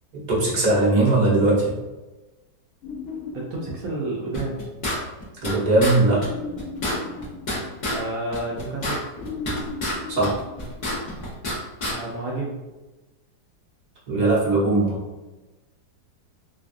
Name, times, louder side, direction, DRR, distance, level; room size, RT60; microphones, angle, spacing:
voice 1, 0.3-1.7 5.4-6.2 10.1-10.4 14.1-15.0, right 2 dB, 40° right, -6 dB, 0.6 m, -19 dB
sound 1, 2.8-4.5 6.1-8.2 9.2-11.3, left 4 dB, 85° left, 0.7 m, -37 dB
voice 2, 3.3-4.6 7.9-9.0 11.9-12.6, right 2 dB, 70° right, -4 dB, 0.9 m, -30 dB
sound 2, 4.3-5.5 5.8-6.0 6.2-6.3 6.6-8.0 8.3-10.0 10.2-11.6 11.8-11.9, left 1 dB, 50° left, 0.5 m, -28 dB
3.1 x 2.3 x 2.5 m, 1.1 s
omnidirectional pair, 1.9 m